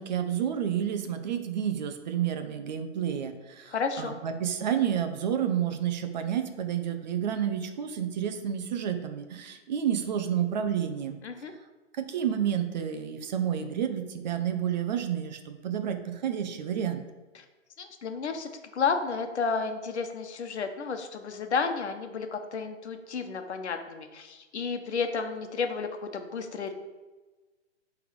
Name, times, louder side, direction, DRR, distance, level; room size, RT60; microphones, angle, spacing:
voice 1, 0.0-11.2 12.0-17.0, right 9 dB, 40° right, 7 dB, 0.7 m, -30 dB
voice 2, 3.7-4.2 11.2-11.5 17.3-17.4 17.8-26.7, left 5 dB, 65° left, 6 dB, 1.2 m, -32 dB
9.3 x 3.6 x 5.1 m, 1.2 s
hypercardioid pair, 140°, 36 cm